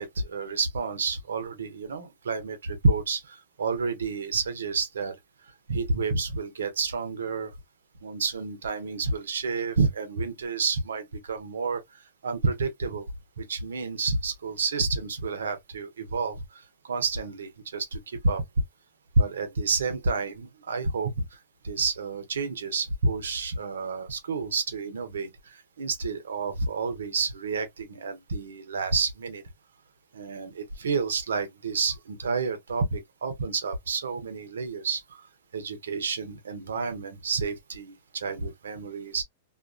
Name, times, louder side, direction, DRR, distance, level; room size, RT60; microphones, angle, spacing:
voice 1, 0.0-5.1 5.7-7.5 8.0-13.1 13.4-18.4 19.2-21.4 21.6-29.4 30.1-35.2 35.5-39.2, right 4 dB, 85° right, 0.8 m, -29 dB
2.5 x 2.4 x 2.4 m
hypercardioid pair, 125°, 0 cm